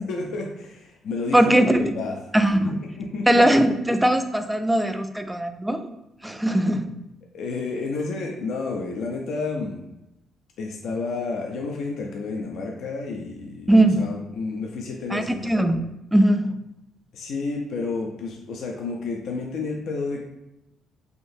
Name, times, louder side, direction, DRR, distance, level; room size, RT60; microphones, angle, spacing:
voice 1, 0.1-2.1 3.0-3.4 7.3-9.8 10.6-15.4 17.1-20.2, left 3 dB, 75° left, 0 dB, 0.4 m, -30 dB
voice 2, 1.3-1.9 2.3-2.8 3.3-5.9 6.2-7.0 13.7-14.1 15.1-16.6, right 1 dB, 5° right, 8 dB, 0.3 m, -20 dB
3.6 x 2.7 x 2.6 m, 0.89 s
cardioid pair, 90°, 0 cm